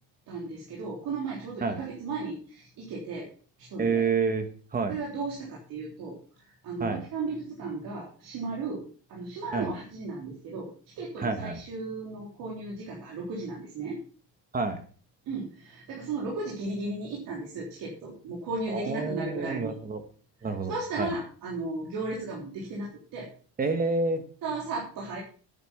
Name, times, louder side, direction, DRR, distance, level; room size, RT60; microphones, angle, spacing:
voice 1, 0.3-3.3 3.6-4.0 4.9-14.0 15.3-19.7 20.4-23.3 24.4-25.2, right 3 dB, 50° right, -3 dB, 3.6 m, -35 dB
voice 2, 3.8-4.9 6.8-7.0 9.5-9.7 11.2-11.6 14.5-14.8 18.7-20.0 20.4-21.1 23.6-24.2, right 4 dB, 20° right, 8 dB, 1.4 m, -28 dB
9.6 x 9.6 x 5.9 m, 0.41 s
cardioid pair, 175°, 43 cm